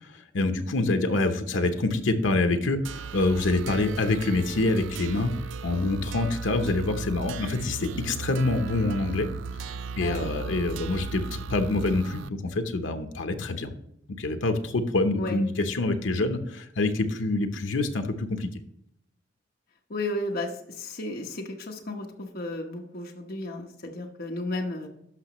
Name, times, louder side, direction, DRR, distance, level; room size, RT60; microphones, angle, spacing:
voice 1, 0.0-5.3 5.6-9.3 9.6-13.7 14.2-18.5, left 2 dB, 80° left, 7 dB, 0.8 m, -26 dB
sound 1, 2.8-12.3, right 5 dB, 75° right, 0.3 m, -36 dB
voice 2, 10.0-10.3 15.2-15.4 19.9-24.9, left 2 dB, 55° left, 2 dB, 1.1 m, -33 dB
12.0 x 5.9 x 3.0 m, 0.75 s
head